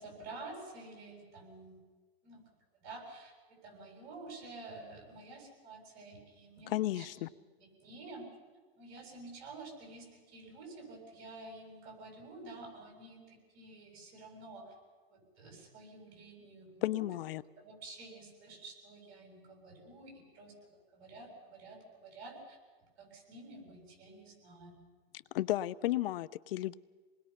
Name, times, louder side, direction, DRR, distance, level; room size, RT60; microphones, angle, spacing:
voice 1, 0.0-1.8 2.2-2.5 2.8-7.3 7.6-8.3 8.8-14.7 15.1-17.1 17.6-22.6 23.0-24.9, right 2 dB, 50° right, 1 dB, 7.4 m, -50 dB
voice 2, 6.7-7.3 16.8-17.4 25.1-26.7, left 15 dB, 65° left, 19 dB, 0.7 m, -33 dB
27.0 x 20.5 x 5.8 m, 1.4 s
hypercardioid pair, 140°, 31 cm